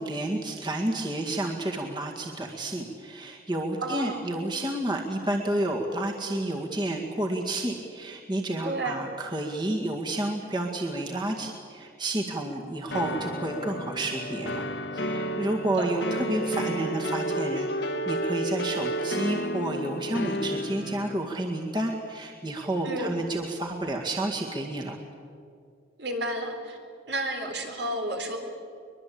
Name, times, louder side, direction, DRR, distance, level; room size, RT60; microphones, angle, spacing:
voice 1, 0.0-14.6 14.9-25.0, right 1 dB, 25° right, 1 dB, 2.0 m, -30 dB
voice 2, 3.8-4.2 8.6-9.0 15.8-15.9 22.8-23.2 26.0-26.8 27.1-28.4, right 1 dB, 70° right, 4 dB, 3.8 m, -31 dB
sound 1, 12.9-21.2, equal, 65° left, 1.6 m, -31 dB
23.0 x 22.0 x 8.6 m, 2.4 s
head